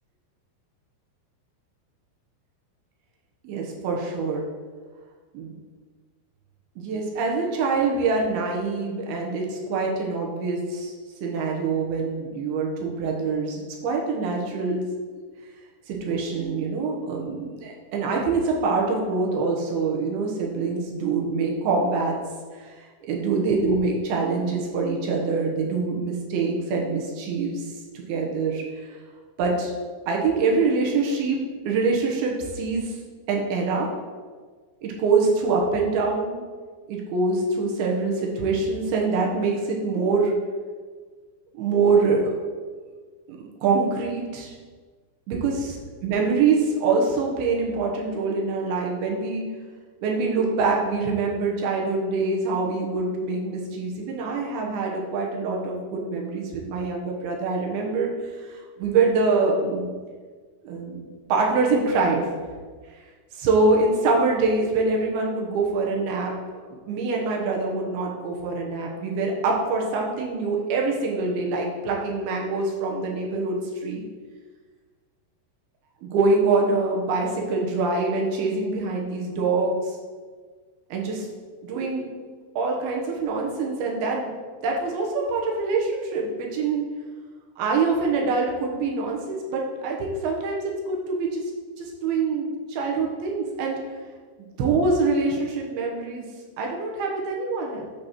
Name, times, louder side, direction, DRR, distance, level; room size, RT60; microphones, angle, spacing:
voice 1, 3.4-4.4 5.3-5.5 6.8-10.9 11.2-14.8 15.1-15.3 15.9-22.2 22.5-29.0 29.4-29.7 30.1-33.0 33.3-33.9 34.8-36.4 36.9-40.3 41.5-42.3 43.3-44.5 45.3-49.5 50.0-59.9 60.6-62.3 63.3-66.3 66.7-74.0 76.0-80.0 80.9-81.3 81.6-82.1 82.6-84.3 84.6-86.8 87.6-91.4 91.8-93.8 94.6-96.3 96.6-97.9, right 4 dB, 75° right, -1 dB, 2.8 m, -25 dB
8.8 x 3.0 x 6.5 m, 1.5 s
omnidirectional pair, 4.8 m